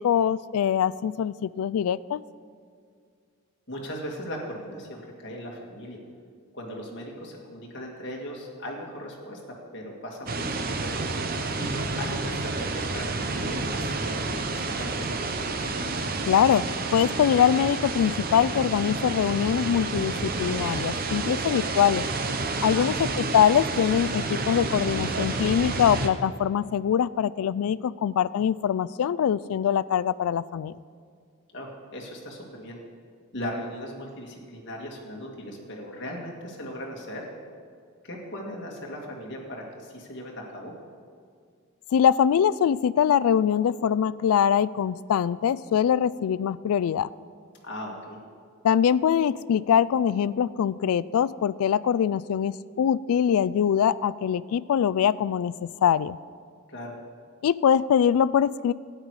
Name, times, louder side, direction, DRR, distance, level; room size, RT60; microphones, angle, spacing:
voice 1, 0.0-2.2 16.2-22.1 22.6-22.9 23.3-30.7 41.9-47.1 48.6-56.2 57.4-58.7, left 8 dB, 85° left, 18 dB, 0.3 m, -23 dB
voice 2, 3.7-6.0 6.5-9.4 9.7-10.3 10.8-11.1 11.6-15.5 22.7-23.1 31.5-32.8 33.3-37.3 38.0-40.7 47.6-48.2 56.7-56.9, equal, 55° left, -1 dB, 2.0 m, -38 dB
sound 1, 10.3-26.1, right 3 dB, 40° right, 0.7 m, -30 dB
12.0 x 9.6 x 4.8 m, 2.2 s
head